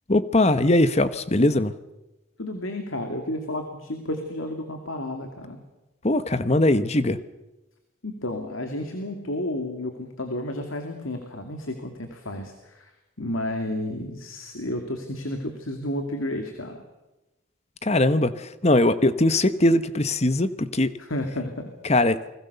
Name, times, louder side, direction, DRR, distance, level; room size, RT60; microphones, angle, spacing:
voice 1, 0.1-1.7 6.0-7.2 17.8-20.9 21.8-22.2, left 1 dB, 30° left, 13 dB, 1.0 m, -21 dB
voice 2, 2.4-5.6 8.0-12.9 13.2-16.8 21.0-21.7, left 1 dB, 80° left, 5 dB, 2.6 m, -31 dB
29.0 x 21.0 x 6.9 m, 1.0 s
head